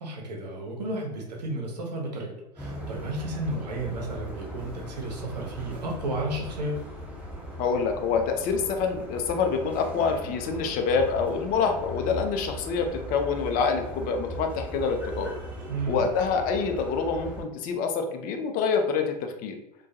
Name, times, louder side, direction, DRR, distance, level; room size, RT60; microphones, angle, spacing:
voice 1, 0.0-6.8 15.7-16.1, right 2 dB, 80° right, -1 dB, 0.8 m, -33 dB
sound 1, 2.6-17.4, right 1 dB, 5° right, 1.0 m, -39 dB
voice 2, 7.6-15.3 15.9-19.5, left 5 dB, 45° left, 5 dB, 0.5 m, -26 dB
2.3 x 2.2 x 2.7 m, 0.86 s
hypercardioid pair, 80°, 21 cm